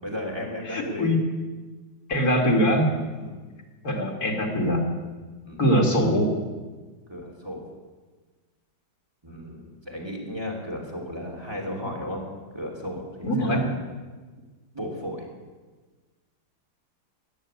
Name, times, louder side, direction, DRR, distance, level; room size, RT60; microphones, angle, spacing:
voice 1, 0.0-1.1 3.1-3.4 5.4-5.6 7.1-7.6 9.2-12.2 12.5-13.8 14.7-15.3, equal, 15° right, -1 dB, 2.9 m, -34 dB
voice 2, 0.7-1.3 2.1-2.9 3.8-4.8 5.6-6.3 13.2-13.6, equal, 55° left, 0 dB, 3.1 m, -22 dB
14.5 x 9.1 x 9.7 m, 1.3 s
omnidirectional pair, 1.9 m